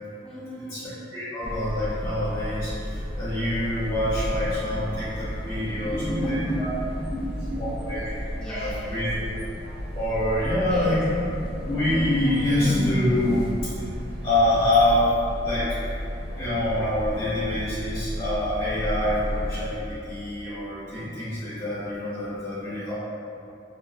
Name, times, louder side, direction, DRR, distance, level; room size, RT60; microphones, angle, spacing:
voice 1, 0.2-0.9 5.4-8.0 8.4-9.1 10.6-11.0, equal, 5° left, -8 dB, 0.5 m, -34 dB
voice 2, 1.1-6.0 6.3-6.7 7.6-8.0 8.5-9.2 9.9-11.2 11.6-13.9 14.2-15.1 15.4-15.7 16.4-22.9, left 1 dB, 35° left, -13 dB, 1.3 m, -26 dB
sound 1, 1.4-19.8, equal, 55° right, 0.5 m, -33 dB
5.5 x 2.5 x 2.2 m, 2.8 s
head